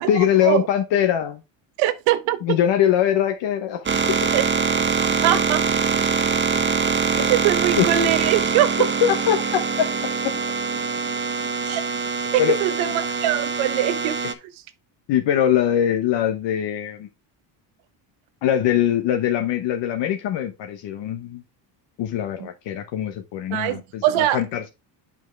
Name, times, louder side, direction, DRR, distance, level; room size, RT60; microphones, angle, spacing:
voice 1, 0.0-1.4 2.4-3.9 6.5-6.6 7.1-7.2 7.8-7.9 9.0-9.9 10.2-10.3 12.4-12.6 15.1-17.1 18.4-21.4 22.0-24.7, left 10 dB, 65° left, 1.1 m, -22 dB
voice 2, 1.8-2.6 4.3-4.4 5.2-5.6 7.3-8.9 11.7-11.8 12.3-14.2 22.4-22.5 23.5-24.4, right 13 dB, 90° right, 1.0 m, -22 dB
sound 1, 3.9-14.3, right 5 dB, 25° right, 0.8 m, -23 dB
7.2 x 5.4 x 3.2 m
cardioid pair, 105°, 46 cm